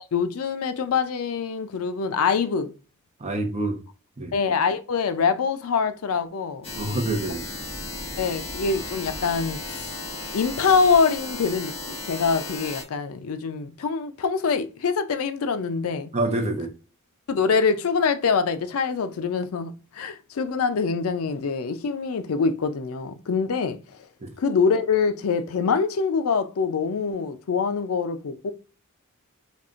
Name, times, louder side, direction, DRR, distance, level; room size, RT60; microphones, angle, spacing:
voice 1, 0.0-2.7 4.3-6.7 7.2-7.3 8.2-10.0 10.3-11.7 12.0-16.1 17.3-24.1 24.4-28.5, left 5 dB, 70° left, 0.4 m, -24 dB
voice 2, 3.2-3.8 4.2-4.3 6.7-7.5 16.1-16.7 24.2-24.3, right 2 dB, 30° right, 0.7 m, -26 dB
sound 1, 6.6-12.8, left 2 dB, 25° left, 1.1 m, -35 dB
5.2 x 2.4 x 2.4 m
head